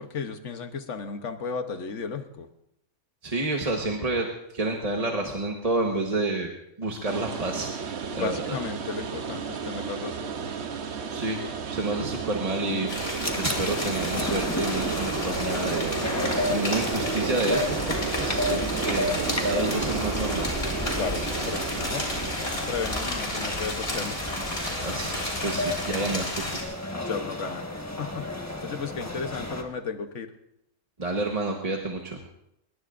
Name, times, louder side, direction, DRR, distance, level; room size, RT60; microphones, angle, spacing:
voice 1, 0.0-2.5 8.1-10.3 21.0-22.1 22.7-24.2 27.1-27.6 28.0-30.3, left 5 dB, 75° left, 8 dB, 1.3 m, -34 dB
voice 2, 3.2-4.3 4.5-6.5 6.8-8.6 11.1-12.9 13.3-21.0 24.8-25.1 25.4-26.9 31.0-32.2, right 2 dB, 30° right, 1 dB, 1.2 m, -30 dB
sound 1, 7.0-24.7, right 6 dB, 65° right, 1.2 m, -33 dB
sound 2, 12.9-26.6, left 1 dB, 50° left, 4.2 m, -33 dB
sound 3, 13.2-29.6, left 1 dB, 15° left, 1.3 m, -32 dB
21.5 x 20.5 x 2.5 m, 0.82 s
omnidirectional pair, 1.3 m